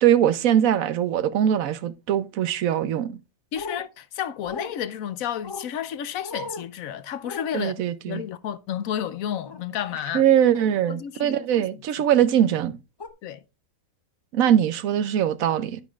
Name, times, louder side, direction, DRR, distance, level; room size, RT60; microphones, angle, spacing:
voice 1, 0.0-3.2 7.5-8.2 10.1-12.8 14.3-15.8, right 10 dB, 85° right, 1.2 m, -21 dB
voice 2, 3.5-7.8 8.1-10.2 10.9-11.7 13.2-13.4, left 9 dB, 85° left, 1.2 m, -31 dB
sound 1, 3.5-3.8 4.5-4.7 5.4-5.7 6.2-6.7 7.2-7.5 9.5-9.6 10.5-10.8 12.0-12.2 13.0-13.1, left 3 dB, 25° left, 0.6 m, -36 dB
10.5 x 9.3 x 2.4 m
omnidirectional pair, 1.4 m